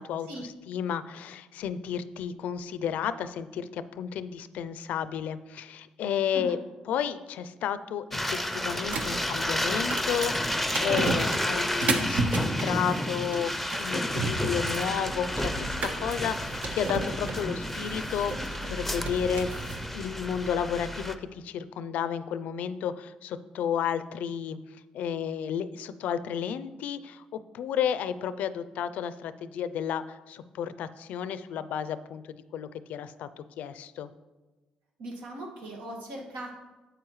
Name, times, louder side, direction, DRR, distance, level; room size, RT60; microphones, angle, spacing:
voice 1, 0.0-6.6 6.9-13.5 13.8-18.3 18.7-19.5 19.9-24.6 24.9-32.2 32.5-34.1, left 8 dB, 75° left, 13 dB, 0.4 m, -32 dB
sound 1, 8.1-21.1, left 1 dB, 5° left, 0.6 m, -31 dB
sound 2, 8.8-19.8, right 3 dB, 65° right, 1.1 m, -34 dB
voice 2, 35.0-36.5, right 1 dB, 90° right, 0 dB, 1.9 m, -39 dB
9.7 x 7.8 x 3.1 m, 1.2 s
cardioid pair, 90°, 3 cm